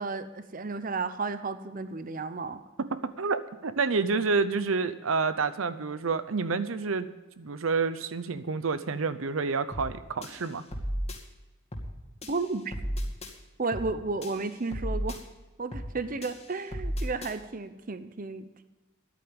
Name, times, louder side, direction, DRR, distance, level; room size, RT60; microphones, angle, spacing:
voice 1, 0.0-2.6 12.3-12.8 13.6-15.2 15.6-18.6, right 3 dB, 40° right, 12 dB, 0.8 m, -33 dB
voice 2, 2.8-7.1 7.4-10.6, right 4 dB, 75° right, 13 dB, 0.7 m, -29 dB
sound 1, 9.7-9.9 10.2-11.2 11.7-11.9 12.2-13.3 13.7-13.9 14.2-15.2 15.7-15.9 16.2-17.3, equal, 30° left, 2.3 m, -34 dB
13.5 x 11.5 x 5.2 m, 1.2 s
head